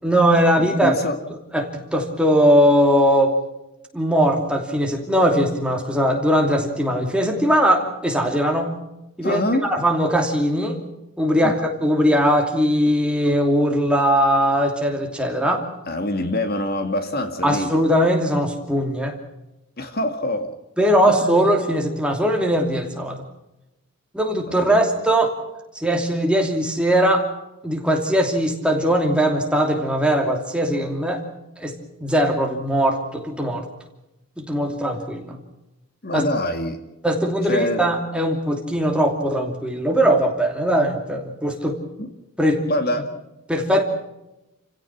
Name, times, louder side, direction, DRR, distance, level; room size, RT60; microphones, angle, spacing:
voice 1, 0.0-1.0 1.5-3.4 3.9-8.8 9.2-10.8 11.2-15.7 17.4-19.2 20.8-23.2 24.1-25.4 25.7-27.2 27.6-31.2 31.6-31.7 32.0-33.6 34.4-35.4 36.1-36.2 37.0-41.8 42.4-42.6 43.5-43.8, equal, 5° right, 2 dB, 2.9 m, -20 dB
voice 2, 0.6-1.2 9.2-9.7 11.4-11.5 15.9-17.7 19.8-20.5 21.1-21.5 24.5-24.8 36.0-36.8 37.4-37.9 42.0-42.1 42.7-43.1, left 1 dB, 45° left, 7 dB, 2.1 m, -25 dB
29.0 x 16.5 x 6.1 m, 0.93 s
head